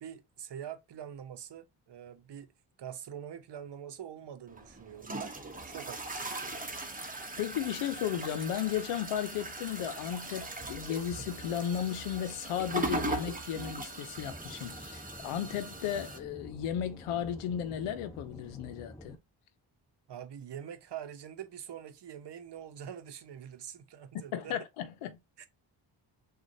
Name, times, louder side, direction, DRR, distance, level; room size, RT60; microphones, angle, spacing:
voice 1, 0.0-2.5 2.8-6.7 20.1-24.6 25.4-25.5, right 9 dB, 55° right, 0.8 m, -45 dB
sound 1, 4.5-16.2, right 2 dB, 15° right, 1.1 m, -39 dB
voice 2, 7.4-19.2 24.3-25.2, left 10 dB, 90° left, 0.7 m, -35 dB
Aircraft / Engine, 14.2-19.2, left 1 dB, 5° left, 1.2 m, -49 dB
6.2 x 2.5 x 2.7 m
supercardioid pair, 50°, 49 cm